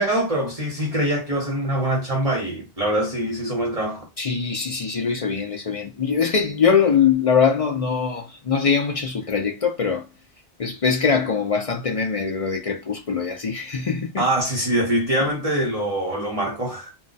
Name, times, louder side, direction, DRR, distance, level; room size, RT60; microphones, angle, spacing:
voice 1, 0.0-4.1 14.2-16.9, right 1 dB, 35° right, 1.0 m, -24 dB
voice 2, 4.2-10.1 10.6-14.2, left 6 dB, 45° left, 0.5 m, -22 dB
2.3 x 2.2 x 3.9 m
omnidirectional pair, 1.1 m